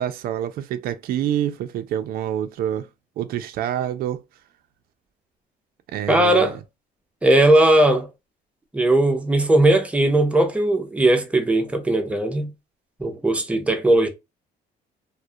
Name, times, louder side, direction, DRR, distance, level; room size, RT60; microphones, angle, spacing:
voice 1, 0.0-2.9 3.2-4.2 5.9-6.5, right 10 dB, 60° right, 0.4 m, -27 dB
voice 2, 6.1-6.6 7.2-8.1 8.7-12.5 13.0-14.1, right 1 dB, 5° right, 0.5 m, -18 dB
2.3 x 2.1 x 2.6 m
cardioid pair, 110°, 17 cm